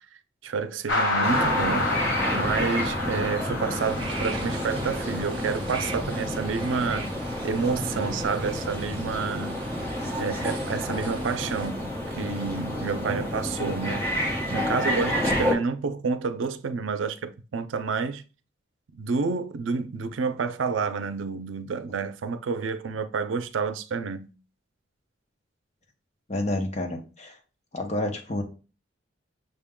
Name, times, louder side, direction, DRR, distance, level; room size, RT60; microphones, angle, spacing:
voice 1, 0.4-1.9 2.3-7.1 7.4-9.6 10.2-11.8 12.1-14.1 14.5-18.2 18.9-24.3, right 5 dB, 85° right, 0.5 m, -29 dB
sound 1, 0.9-5.7, left 2 dB, 90° left, 1.1 m, -29 dB
sound 2, 1.2-15.6, left 1 dB, 10° left, 1.0 m, -30 dB
sound 3, 3.7-11.7, right 3 dB, 25° right, 0.7 m, -40 dB
voice 2, 26.3-27.4 27.7-28.4, left 1 dB, 35° left, 0.8 m, -29 dB
6.4 x 2.2 x 3.6 m
head